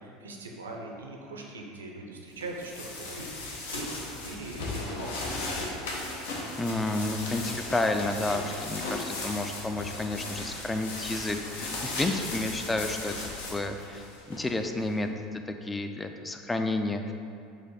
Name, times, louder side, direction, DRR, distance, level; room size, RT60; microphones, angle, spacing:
voice 1, 0.0-5.8, right 2 dB, 90° right, 1 dB, 0.5 m, -41 dB
sound 1, 2.4-14.9, left 2 dB, 75° left, 0.7 m, -36 dB
voice 2, 6.6-13.1 13.5-15.1 15.6-17.1, left 2 dB, 15° left, 6 dB, 0.3 m, -31 dB
4.1 x 2.6 x 3.9 m, 2.5 s
hypercardioid pair, 80°, 0 cm